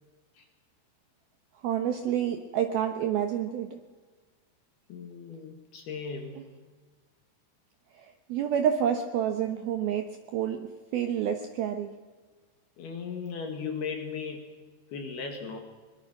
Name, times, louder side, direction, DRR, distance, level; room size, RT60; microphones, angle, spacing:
voice 1, 1.6-3.8 8.0-10.1 10.3-10.7 10.9-11.9, right 9 dB, 80° right, 6 dB, 2.2 m, -28 dB
voice 2, 4.9-6.4 12.8-14.5 14.9-15.6, left 5 dB, 60° left, 4 dB, 3.3 m, -37 dB
22.5 x 22.0 x 6.1 m, 1.4 s
omnidirectional pair, 5.8 m